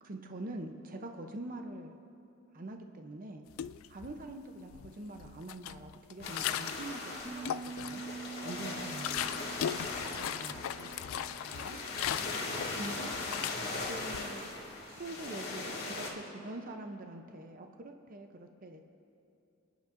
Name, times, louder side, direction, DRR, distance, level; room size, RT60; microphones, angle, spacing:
voice 1, 0.0-2.0 2.5-3.4 3.9-8.0 8.4-8.8 12.3-12.5 12.8-13.2 13.8-14.5 14.9-18.8, right 2 dB, 45° right, 5 dB, 0.7 m, -44 dB
sound 1, 3.5-4.3 4.7-6.9 7.3-8.2 8.5-14.2, left 10 dB, 80° left, 0.3 m, -38 dB
sound 2, 6.2-16.1, left 3 dB, 55° left, 2.0 m, -39 dB
sound 3, 7.3-12.1, right 5 dB, 10° right, 0.8 m, -46 dB
voice 2, 8.8-9.7 10.1-10.9 11.3-11.8, right 2 dB, 80° right, 7 dB, 0.8 m, -51 dB
29.5 x 10.0 x 2.6 m, 2.7 s
head